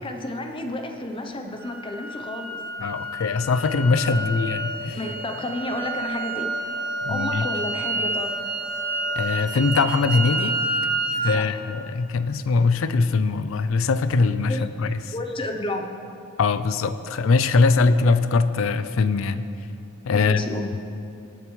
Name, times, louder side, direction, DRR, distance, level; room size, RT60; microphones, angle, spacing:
voice 1, 0.0-2.6 4.1-4.2 4.9-6.5 7.1-8.3 11.2-11.6 14.5-14.6 15.1-15.9 20.1-20.7, left 1 dB, 25° left, 4 dB, 0.6 m, -31 dB
sound 1, 1.6-11.3, right 2 dB, 40° right, 1.0 m, -29 dB
voice 2, 2.8-5.0 7.0-7.5 9.2-10.5 11.2-15.0 16.4-19.4 20.0-20.4, left 4 dB, 65° left, 12 dB, 0.4 m, -22 dB
sound 2, 3.3-9.4, left 3 dB, 65° right, 2.1 m, -40 dB
19.0 x 8.9 x 3.2 m, 2.7 s
head